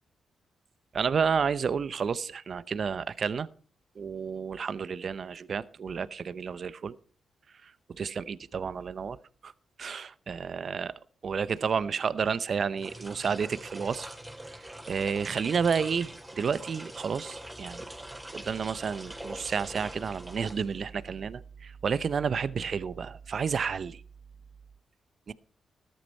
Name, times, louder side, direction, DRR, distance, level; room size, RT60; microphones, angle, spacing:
voice 1, 0.9-3.5 4.0-7.0 7.6-9.2 9.4-9.5 9.8-10.9 11.2-14.1 14.5-17.9 18.3-24.0 25.3-25.4, right 6 dB, 60° right, 17 dB, 0.7 m, -31 dB
sound 1, 12.7-21.1, right 1 dB, 10° right, 3.5 m, -43 dB
14.0 x 12.0 x 4.4 m, 0.40 s
supercardioid pair, 50°, 0 cm